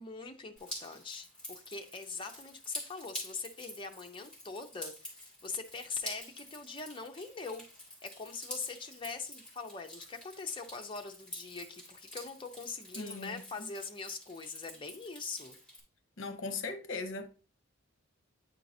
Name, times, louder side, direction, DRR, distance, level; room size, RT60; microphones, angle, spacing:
voice 1, 0.0-7.6 8.0-15.6, left 4 dB, 25° left, 0.6 m, -42 dB
Drip, 0.6-15.8, left 1 dB, 5° left, 2.2 m, -48 dB
voice 2, 13.0-13.7 16.2-17.3, left 3 dB, 65° left, 0.7 m, -39 dB
9.2 x 4.5 x 2.7 m
head